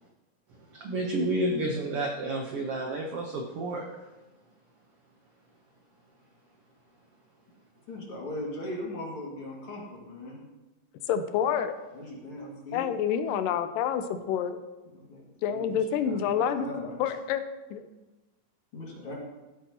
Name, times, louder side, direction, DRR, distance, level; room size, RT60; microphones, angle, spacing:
voice 1, 0.5-4.1, right 1 dB, 80° right, 1 dB, 1.3 m, -31 dB
voice 2, 7.9-10.4 11.9-13.0 14.9-17.0 18.7-19.1, left 1 dB, 45° left, -3 dB, 2.7 m, -39 dB
voice 3, 11.1-11.8 12.7-14.6 15.4-16.7 17.0-17.4 17.7-17.9, left 8 dB, 85° left, 10 dB, 2.2 m, -28 dB
14.5 x 8.3 x 2.9 m, 1.1 s
omnidirectional pair, 3.9 m